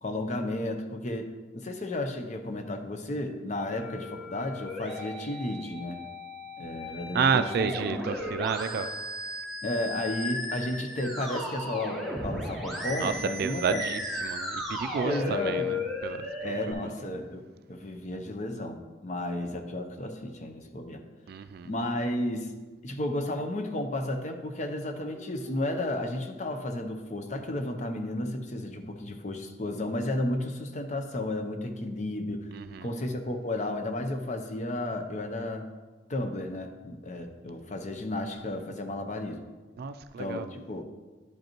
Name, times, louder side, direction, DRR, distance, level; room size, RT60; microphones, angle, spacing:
voice 1, 0.0-6.0 6.6-7.7 9.6-13.8 15.0-15.8 16.4-21.0 21.6-22.5 22.8-32.5 32.8-35.7 36.1-39.4 40.2-40.8, left 1 dB, 40° left, 6 dB, 0.7 m, -33 dB
Musical instrument, 3.7-16.7, left 1 dB, ahead, 1.1 m, -36 dB
voice 2, 7.1-8.9 13.0-13.1 13.4-16.5 21.3-21.7 32.5-32.9 39.8-40.5, right 6 dB, 55° right, 11 dB, 0.3 m, -30 dB
Dog, 21.2-21.5 21.8-21.9 22.1-22.8 23.4-23.6 24.0-24.1 24.2-24.3 24.5-27.4, equal, 25° right, 1.3 m, -50 dB
10.5 x 5.2 x 3.0 m, 1.3 s
head